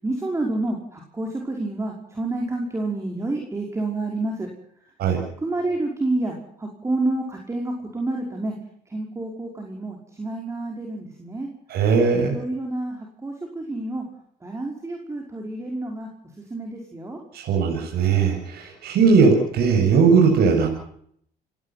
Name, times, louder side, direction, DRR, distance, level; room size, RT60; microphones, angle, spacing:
voice 1, 0.0-4.5 5.4-8.5 8.9-11.5 12.2-14.0 14.4-16.1 16.5-17.2, right 2 dB, 15° right, 1 dB, 5.5 m, -29 dB
voice 2, 11.7-12.4 17.3-20.7, right 5 dB, 70° right, 1 dB, 7.5 m, -18 dB
29.5 x 17.5 x 6.0 m, 0.66 s
cardioid pair, 110°, 17 cm